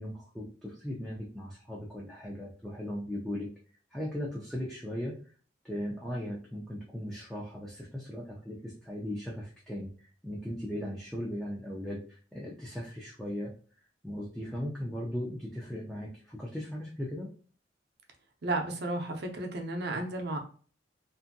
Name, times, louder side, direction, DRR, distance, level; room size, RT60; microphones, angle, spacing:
voice 1, 0.0-3.5 3.9-5.1 5.6-13.5 14.0-17.3, equal, ahead, -5 dB, 0.5 m, -38 dB
voice 2, 18.4-20.4, right 2 dB, 65° right, 3 dB, 0.6 m, -33 dB
2.6 x 2.5 x 2.6 m, 0.41 s
head